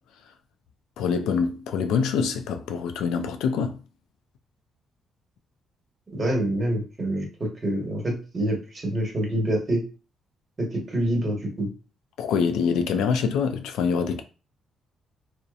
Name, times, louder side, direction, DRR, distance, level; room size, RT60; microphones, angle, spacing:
voice 1, 1.0-3.8 12.2-14.2, left 6 dB, 85° left, 0.3 m, -25 dB
voice 2, 6.1-9.8 10.6-11.7, right 1 dB, 40° right, 1.1 m, -26 dB
2.6 x 2.0 x 2.4 m
cardioid pair, 90°, 0 cm